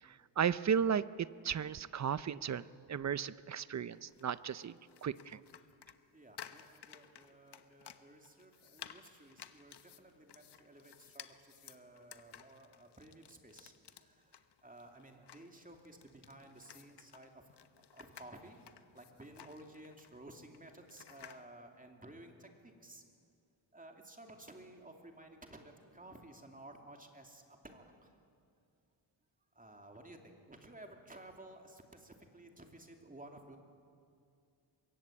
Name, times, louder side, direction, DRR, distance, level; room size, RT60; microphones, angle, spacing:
voice 1, 0.4-2.6 2.9-4.7 5.0-5.4, right 7 dB, 40° right, 16 dB, 0.6 m, -34 dB
sound 1, 3.9-21.4, left 9 dB, 60° left, 1.2 m, -56 dB
voice 2, 6.1-17.6 17.9-23.0 23.7-28.1 29.5-33.6, right 1 dB, 15° right, 3 dB, 2.7 m, -55 dB
24.5 x 22.5 x 8.7 m, 2.4 s
wide cardioid pair, 120°, 46 cm